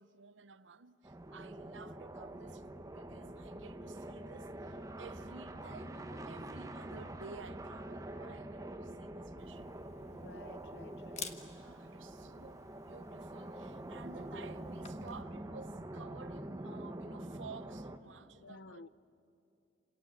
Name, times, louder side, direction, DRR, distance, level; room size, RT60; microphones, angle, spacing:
voice 1, 0.0-9.7 11.5-18.9, right 5 dB, 90° right, 0.8 m, -53 dB
sound 1, 1.0-18.0, right 1 dB, 20° right, 1.0 m, -45 dB
Camera, 9.4-15.2, left 6 dB, 40° left, 1.4 m, -52 dB
voice 2, 10.1-11.4 18.4-18.9, left 3 dB, 65° left, 0.6 m, -53 dB
28.5 x 27.5 x 7.3 m
head